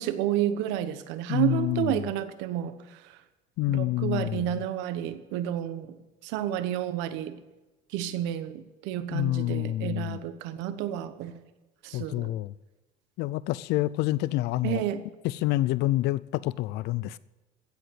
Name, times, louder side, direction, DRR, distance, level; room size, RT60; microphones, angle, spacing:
voice 1, 0.0-2.8 3.7-6.0 6.2-7.4 7.9-11.4 11.8-12.3 14.6-15.0, right 11 dB, 85° right, 1.1 m, -30 dB
voice 2, 1.3-2.0 3.6-4.6 9.1-10.2 11.9-12.5 13.2-14.8 15.2-17.2, left 16 dB, 65° left, 0.4 m, -28 dB
15.0 x 8.0 x 7.8 m
cardioid pair, 125°, 19 cm